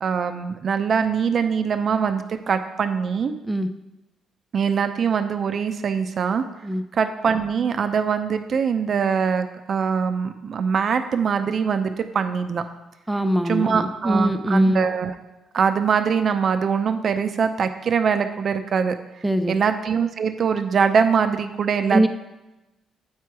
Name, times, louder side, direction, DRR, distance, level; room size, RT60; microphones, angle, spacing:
voice 1, 0.0-3.3 4.5-6.4 7.0-12.6 13.5-15.1 15.5-19.0 19.5-22.1, right 6 dB, 55° right, 8 dB, 0.6 m, -22 dB
voice 2, 13.1-14.9 19.2-19.6 21.9-22.1, equal, 5° right, 8 dB, 0.6 m, -22 dB
8.4 x 4.6 x 4.7 m, 1.0 s
cardioid pair, 90°, 0 cm